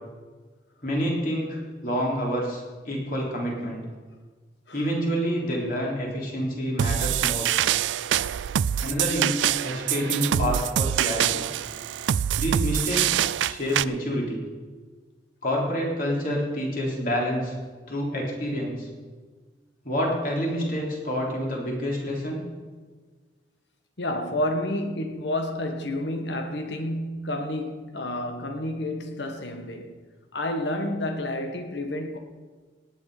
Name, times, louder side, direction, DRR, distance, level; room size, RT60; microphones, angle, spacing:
voice 1, 0.8-3.8 4.7-7.5 8.8-11.5 12.4-14.4 15.4-17.5 17.9-18.9 19.8-22.4, equal, 50° left, 3.7 m, -28 dB
sound 1, 6.8-13.8, right 10 dB, 90° right, 0.3 m, -25 dB
voice 2, 24.0-30.0 30.3-32.2, left 1 dB, 75° left, 1.6 m, -30 dB
18.0 x 9.2 x 5.0 m
head